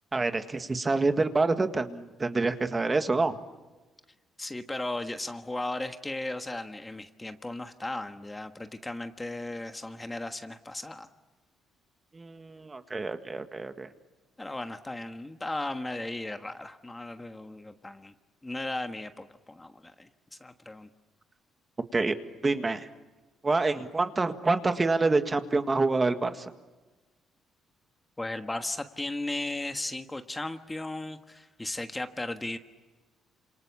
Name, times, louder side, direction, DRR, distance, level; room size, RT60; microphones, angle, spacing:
voice 1, 0.1-3.4 12.1-13.9 21.9-22.2 22.4-22.9 23.4-26.5, right 3 dB, 20° right, 8 dB, 1.8 m, -27 dB
voice 2, 4.4-11.1 14.4-18.1 18.4-20.9 28.2-32.6, left 2 dB, 15° left, 7 dB, 1.4 m, -36 dB
29.0 x 27.0 x 7.3 m, 1.2 s
cardioid pair, 115°, 0 cm